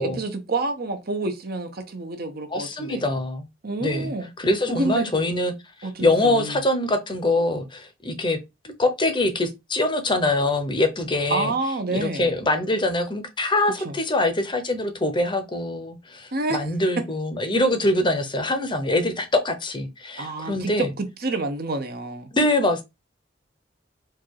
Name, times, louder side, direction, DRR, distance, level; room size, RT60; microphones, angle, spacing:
voice 1, 0.0-3.0 3.6-4.3 4.7-5.1 5.8-6.6 11.3-12.3 13.8-13.9 16.3-16.6 20.2-22.3, right 2 dB, 55° right, 0.9 m, -28 dB
voice 2, 2.5-3.5 3.8-4.1 4.4-5.5 5.8-8.4 8.6-11.5 11.9-20.9 22.3-22.8, left 1 dB, 25° left, 0.8 m, -24 dB
4.5 x 2.5 x 4.6 m
head